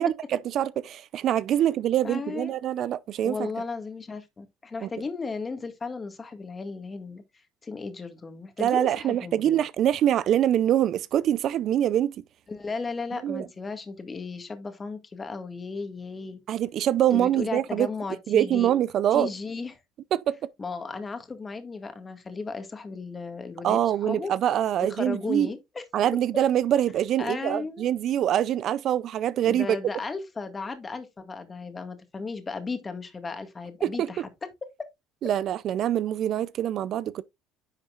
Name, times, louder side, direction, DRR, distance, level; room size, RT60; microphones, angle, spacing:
voice 1, 0.0-3.5 4.8-4.9 8.6-12.1 13.2-13.5 16.5-17.9 18.3-19.3 20.1-20.3 23.6-25.5 25.9-29.8 33.8-34.3 35.2-37.2, right 11 dB, 55° right, 0.5 m, -24 dB
voice 2, 2.0-2.6 3.2-7.2 7.6-9.6 12.5-16.4 17.1-18.7 19.1-19.8 20.6-24.3 24.8-25.8 27.2-27.9 29.4-34.3, left 4 dB, 25° left, 1.8 m, -35 dB
10.5 x 5.6 x 2.5 m
cardioid pair, 110°, 0 cm